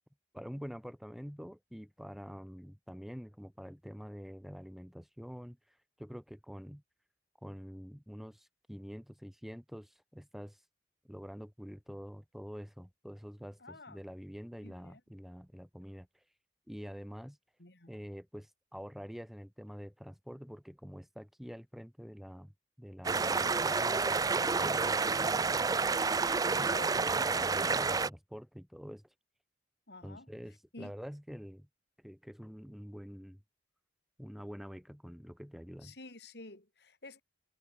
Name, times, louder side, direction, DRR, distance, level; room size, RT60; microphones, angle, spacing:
voice 1, 0.3-6.8 7.4-10.6 11.1-16.2 16.7-17.4 17.9-22.5 22.8-25.8 26.5-29.1 30.0-31.7 32.0-33.4 34.2-35.9, equal, ahead, 2.3 m, -47 dB
voice 2, 13.6-14.0 14.6-15.0 17.6-17.9 26.7-27.1 29.9-30.3 30.7-30.9 35.8-37.2, left 2 dB, 60° left, 3.8 m, -50 dB
sound 1, 23.0-28.1, right 4 dB, 20° right, 0.4 m, -29 dB
head